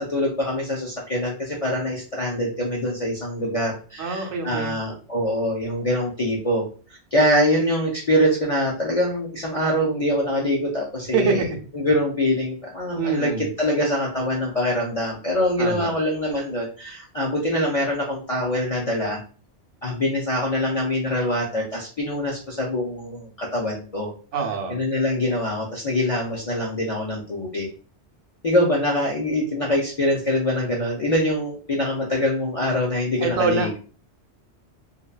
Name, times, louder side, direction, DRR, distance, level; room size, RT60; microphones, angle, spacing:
voice 1, 0.0-6.6 7.1-11.5 11.7-13.3 13.6-19.2 19.8-24.1 24.7-27.7 28.4-33.8, left 1 dB, 55° left, -3 dB, 0.4 m, -24 dB
voice 2, 4.0-4.8 11.1-11.5 13.0-13.5 15.6-16.0 24.3-24.8 33.2-33.7, right 5 dB, 85° right, 3 dB, 0.9 m, -25 dB
2.7 x 2.1 x 2.2 m, 0.38 s
omnidirectional pair, 1.2 m